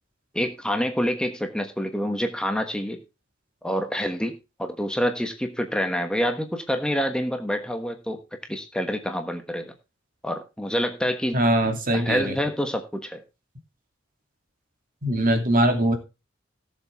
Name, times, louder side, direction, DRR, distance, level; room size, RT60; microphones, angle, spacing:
voice 1, 0.3-3.0 3.6-4.3 4.6-8.2 8.5-9.7 10.2-11.4 11.9-13.2, equal, 5° left, 5 dB, 1.3 m, -27 dB
voice 2, 11.3-12.4 15.0-16.0, right 1 dB, 45° right, 5 dB, 2.7 m, -21 dB
17.5 x 7.4 x 3.5 m, 0.28 s
head